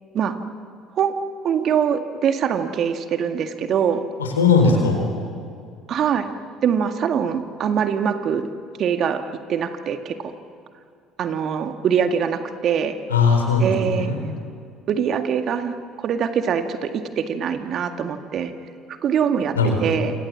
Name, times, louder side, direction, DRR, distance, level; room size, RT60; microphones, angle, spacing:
voice 1, 1.4-4.0 5.9-6.3 6.6-8.5 8.8-9.2 9.5-10.3 11.2-13.0 13.6-14.1 14.9-18.5 18.9-20.1, right 7 dB, 50° right, 7 dB, 1.9 m, -23 dB
voice 2, 4.2-5.1 13.1-14.2 19.5-19.8, left 4 dB, 90° left, 3 dB, 4.4 m, -18 dB
28.0 x 26.5 x 7.4 m, 2.3 s
hypercardioid pair, 60°, 0 cm